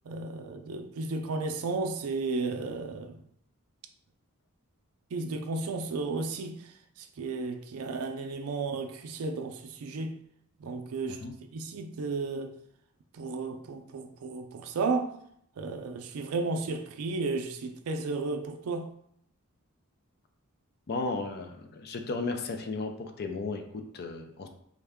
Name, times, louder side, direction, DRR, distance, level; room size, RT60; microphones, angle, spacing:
voice 1, 0.1-3.2 5.1-10.2 10.6-11.2 11.5-12.5 13.1-15.1 15.6-18.9, right 3 dB, 75° right, 0.4 m, -33 dB
voice 2, 20.9-24.5, left 3 dB, 50° left, 0.4 m, -35 dB
3.5 x 2.1 x 3.5 m
head